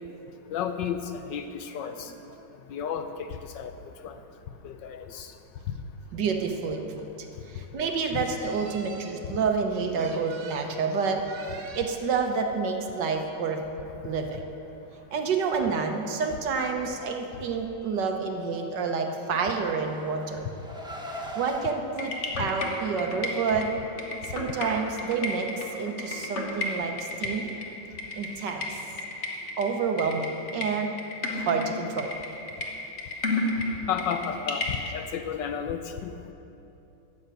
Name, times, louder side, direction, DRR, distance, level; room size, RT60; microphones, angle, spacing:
voice 1, 0.5-2.1 2.7-3.7 4.0-4.2 4.6-5.3 33.9-36.1, left 7 dB, 70° left, 8 dB, 1.2 m, -32 dB
voice 2, 6.1-7.1 7.5-13.6 14.0-14.5 15.1-20.5 21.1-22.1 22.4-23.7 24.3-25.5 25.7-27.6 28.1-28.8 29.6-31.0 31.4-32.1, right 5 dB, 65° right, 4 dB, 1.5 m, -29 dB
Car, 19.2-21.7, equal, 5° right, 0.6 m, -40 dB
sound 1, 22.0-34.9, left 2 dB, 40° left, 1.3 m, -33 dB
13.0 x 6.4 x 9.0 m, 2.9 s
omnidirectional pair, 2.2 m